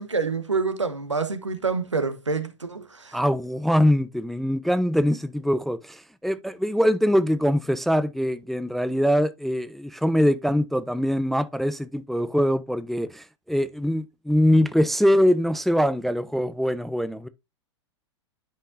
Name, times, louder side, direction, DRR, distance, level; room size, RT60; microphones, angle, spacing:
voice 1, 0.0-3.2, right 4 dB, 80° right, 1.1 m, -27 dB
voice 2, 3.1-17.3, equal, ahead, 0.3 m, -23 dB
10.5 x 5.5 x 2.6 m
figure-of-eight pair, 95°, 15 cm